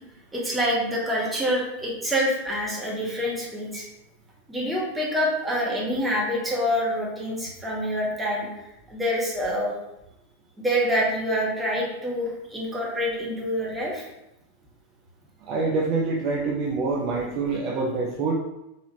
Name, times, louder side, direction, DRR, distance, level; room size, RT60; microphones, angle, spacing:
voice 1, 0.3-3.9 4.5-8.5 8.9-9.7 10.6-14.0, equal, 10° right, -4 dB, 1.1 m, -26 dB
voice 2, 15.4-18.3, right 3 dB, 40° right, -3 dB, 0.6 m, -26 dB
4.2 x 2.7 x 2.7 m, 0.88 s
figure-of-eight pair, 90°, 0 cm